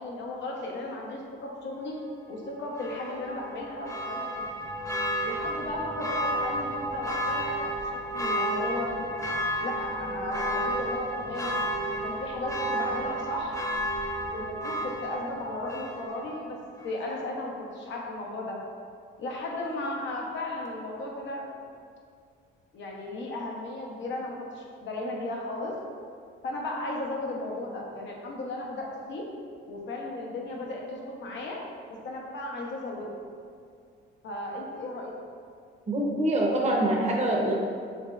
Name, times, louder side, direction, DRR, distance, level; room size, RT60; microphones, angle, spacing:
voice 1, 0.0-2.0 2.3-4.5 5.2-9.1 9.6-13.6 14.2-16.6 16.8-18.6 19.2-21.5 22.7-25.8 26.4-29.3 29.7-31.6 32.0-33.1 34.2-35.1, left 2 dB, 65° left, -1 dB, 0.9 m, -35 dB
Church bell, 2.7-16.4 16.8-16.9, right 1 dB, 15° left, 0.9 m, -32 dB
voice 2, 35.9-37.5, right 1 dB, 35° right, -2 dB, 0.9 m, -25 dB
6.0 x 3.2 x 2.5 m, 2.3 s
cardioid pair, 90°, 20 cm